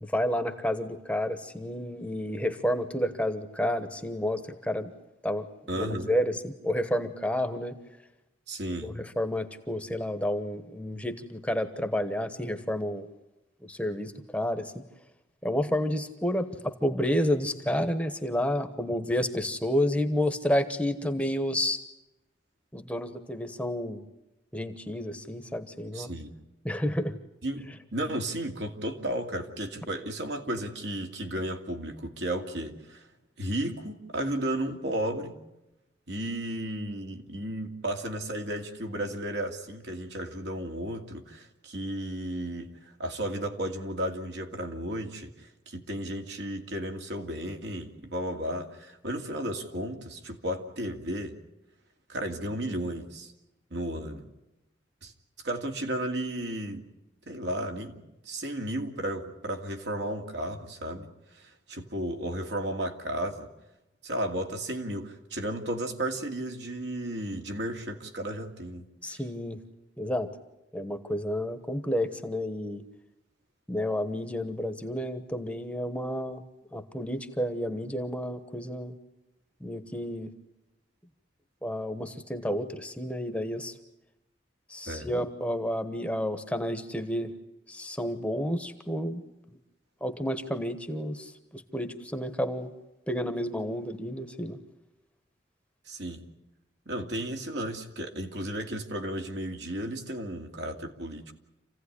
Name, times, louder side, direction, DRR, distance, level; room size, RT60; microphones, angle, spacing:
voice 1, 0.0-4.9 5.2-5.4 5.7-7.7 8.8-13.1 13.6-14.8 15.4-21.8 22.7-24.0 24.5-26.1 26.6-27.1 69.0-69.6 70.0-70.3 70.7-72.8 73.7-76.4 76.7-78.9 79.6-80.3 81.6-83.7 84.7-87.3 87.7-89.2 90.0-92.7 93.1-94.6, left 1 dB, 5° left, 8 dB, 1.1 m, -30 dB
voice 2, 5.7-6.2 8.5-8.9 25.9-26.3 27.4-33.0 33.4-35.4 36.1-51.3 52.1-53.3 53.7-54.3 55.0-55.1 55.4-56.8 57.3-61.1 61.3-63.5 64.0-69.2 84.9-85.1 95.9-96.2 96.9-101.3, right 1 dB, 70° right, 3 dB, 2.4 m, -34 dB
28.0 x 16.0 x 10.0 m, 0.95 s
head